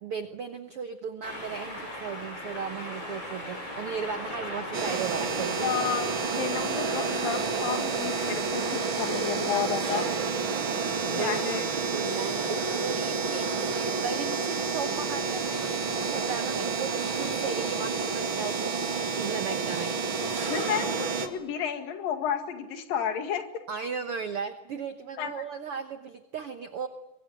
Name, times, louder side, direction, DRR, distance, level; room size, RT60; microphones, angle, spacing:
voice 1, 0.0-5.8 9.5-10.2 11.1-20.0 23.7-26.9, right 6 dB, 70° right, 9 dB, 1.3 m, -36 dB
sound 1, 1.2-16.8, left 1 dB, 30° left, 7.8 m, -41 dB
sound 2, 4.7-21.3, right 4 dB, 40° right, 2.3 m, -29 dB
voice 2, 5.6-6.1 6.4-10.1 11.1-11.6 20.5-23.4 25.2-25.3, left 8 dB, 70° left, 7 dB, 3.7 m, -31 dB
23.5 x 23.0 x 10.0 m, 0.93 s
omnidirectional pair, 4.2 m